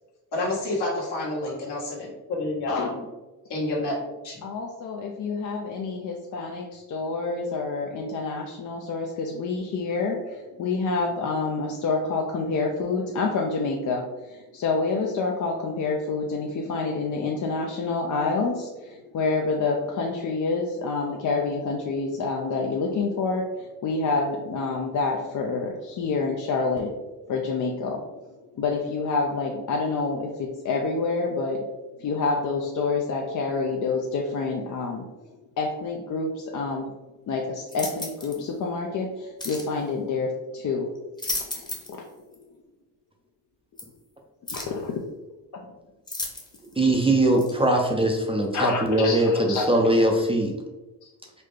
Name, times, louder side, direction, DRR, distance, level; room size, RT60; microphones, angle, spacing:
voice 1, 0.3-3.0 3.5-4.4, left 2 dB, 70° left, -4 dB, 1.4 m, -29 dB
voice 2, 4.4-27.0 27.3-28.0 28.6-31.7 32.0-35.1 35.6-36.9 37.3-41.0 41.5-41.6 41.9-42.0 44.5-45.0 48.5-50.0, left 4 dB, 45° left, 0 dB, 0.5 m, -28 dB
sound 1, 37.7-38.4 39.4-39.7 41.0-42.0 42.3-42.4 43.8-43.9 44.5-44.8 46.1-46.7 47.4-47.5, left 2 dB, 10° left, 0.9 m, -34 dB
voice 3, 46.8-50.5, right 1 dB, 15° right, 0 dB, 0.5 m, -21 dB
4.1 x 2.2 x 3.2 m, 1.1 s
cardioid pair, 75°, 43 cm